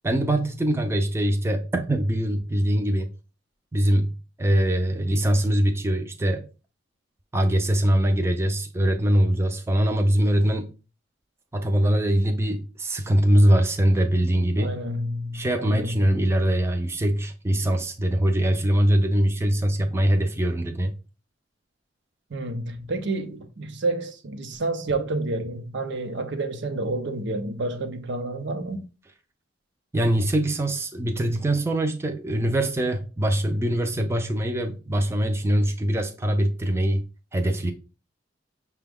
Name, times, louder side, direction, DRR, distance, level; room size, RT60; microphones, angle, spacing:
voice 1, 0.0-3.1 3.7-4.1 4.4-6.5 7.3-10.7 11.5-14.7 15.3-20.9 29.9-37.0 37.3-37.7, right 1 dB, 15° right, 0.4 m, -22 dB
voice 2, 14.6-16.0 22.3-28.9, right 2 dB, 65° right, 0.7 m, -29 dB
5.9 x 2.2 x 3.5 m
head